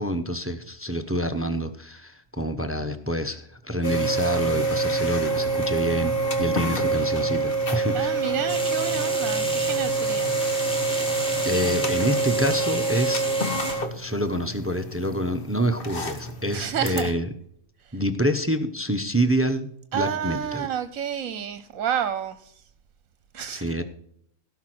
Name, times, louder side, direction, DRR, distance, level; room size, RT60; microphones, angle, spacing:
voice 1, 0.0-8.2 11.4-13.3 13.9-17.3 17.9-20.7 23.5-23.8, equal, 15° right, 0.6 m, -27 dB
sound 1, 3.8-17.1, right 3 dB, 40° left, 1.5 m, -26 dB
voice 2, 7.9-10.5 16.5-17.1 17.9-18.0 19.9-22.6 23.3-23.7, right 9 dB, 75° right, 1.2 m, -30 dB
sound 2, 8.5-13.7, equal, 5° left, 2.9 m, -33 dB
17.0 x 5.7 x 6.0 m
omnidirectional pair, 1.5 m